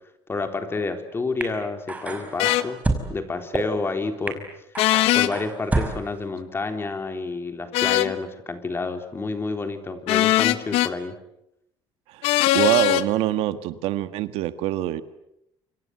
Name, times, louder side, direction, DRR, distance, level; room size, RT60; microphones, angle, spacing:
voice 1, 0.3-2.8 3.1-4.4 5.1-11.1, left 3 dB, 25° left, 7 dB, 3.8 m, -29 dB
sound 1, 1.4-1.5 1.9-3.0 3.5-3.6 4.3-4.4 4.7-6.0, right 2 dB, 15° right, 5.3 m, -27 dB
sound 2, 2.4-2.6 4.8-5.3 7.7-8.1 10.1-10.9 12.2-13.0, left 16 dB, 85° left, 1.3 m, -20 dB
voice 2, 12.1-15.0, right 14 dB, 85° right, 12 dB, 1.6 m, -25 dB
29.0 x 26.0 x 7.9 m, 0.80 s
cardioid pair, 115°, 10 cm